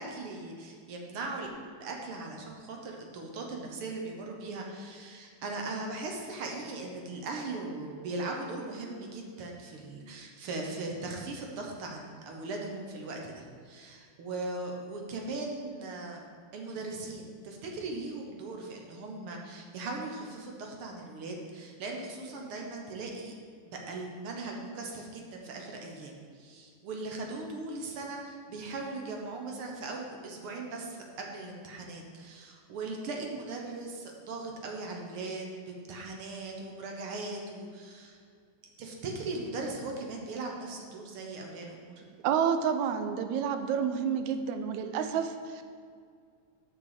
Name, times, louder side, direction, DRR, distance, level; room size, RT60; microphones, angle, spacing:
voice 1, 0.0-1.5 1.8-16.2 16.5-23.3 23.6-38.2 38.8-41.9, right 3 dB, 60° right, 1 dB, 1.7 m, -39 dB
voice 2, 42.2-45.6, right 7 dB, 85° right, 8 dB, 2.0 m, -29 dB
6.7 x 6.0 x 6.7 m, 2.1 s
omnidirectional pair, 3.3 m